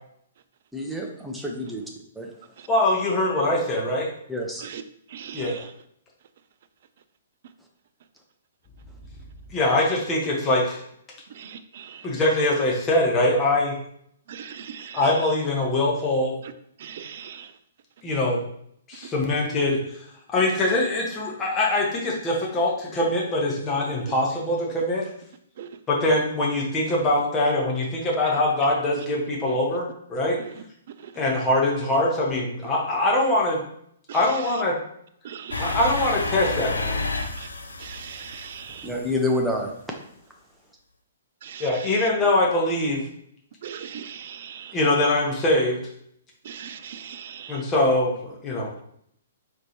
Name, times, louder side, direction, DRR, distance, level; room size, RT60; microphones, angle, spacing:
voice 1, 0.7-1.8 2.2-2.3 4.3-4.6 38.8-39.7, left 1 dB, 5° right, 0.6 m, -27 dB
voice 2, 2.7-4.1 5.3-5.6 9.5-10.8 12.0-13.7 14.9-16.4 18.0-18.4 18.9-19.8 20.3-25.1 25.9-30.4 31.1-33.6 34.1-34.7 35.6-37.0 41.6-43.0 44.7-45.8 47.5-48.7, left 1 dB, 20° left, 1.0 m, -23 dB
voice 3, 5.1-5.5 11.4-12.0 14.3-15.0 16.8-17.5 25.6-25.7 35.2-35.8 37.8-38.9 41.4-41.7 43.6-44.8 46.5-47.6, right 8 dB, 50° right, 0.3 m, -39 dB
sound 1, 35.5-39.4, left 2 dB, 75° left, 0.5 m, -30 dB
4.4 x 3.1 x 2.7 m
figure-of-eight pair, 120°, 0 cm